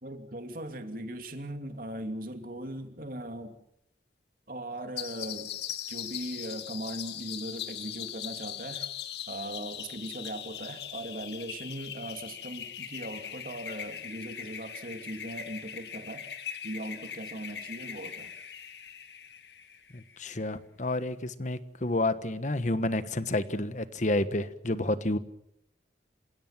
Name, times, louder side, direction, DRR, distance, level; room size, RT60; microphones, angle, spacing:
voice 1, 0.0-3.6 4.5-5.5 5.9-8.9 9.3-16.2 16.6-18.3, right 1 dB, 50° right, 6 dB, 2.7 m, -39 dB
sound 1, 5.0-20.2, left 9 dB, 70° left, 1.8 m, -40 dB
voice 2, 19.9-25.2, left 2 dB, 45° left, 12 dB, 1.3 m, -30 dB
28.0 x 17.0 x 7.4 m, 0.77 s
head